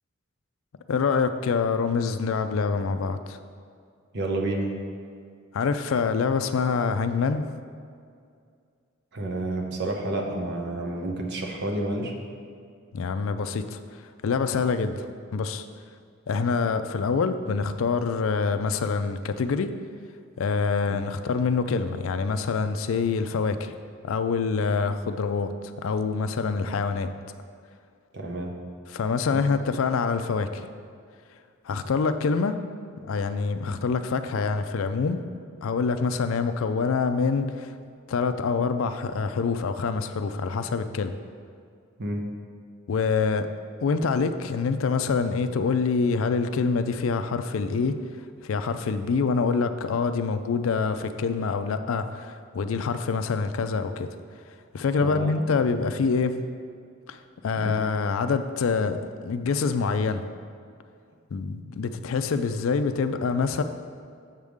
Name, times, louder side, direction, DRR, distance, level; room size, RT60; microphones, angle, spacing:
voice 1, 0.9-3.4 5.5-7.5 12.9-13.8 14.2-15.1 15.3-15.7 16.3-19.7 20.4-23.7 24.0-27.1 28.9-30.7 31.6-32.6 33.1-35.2 35.6-37.7 38.1-41.1 42.9-43.5 43.8-48.0 48.4-54.1 54.7-56.4 57.1-60.2 61.3-63.6, left 5 dB, 70° left, 10 dB, 0.4 m, -26 dB
voice 2, 4.1-4.7 9.1-12.1 20.9-21.0 28.1-28.5 29.3-29.4 42.0-42.2 55.0-55.4 57.6-57.8, right 2 dB, 55° right, 1 dB, 0.9 m, -30 dB
7.3 x 3.5 x 6.4 m, 2.2 s
head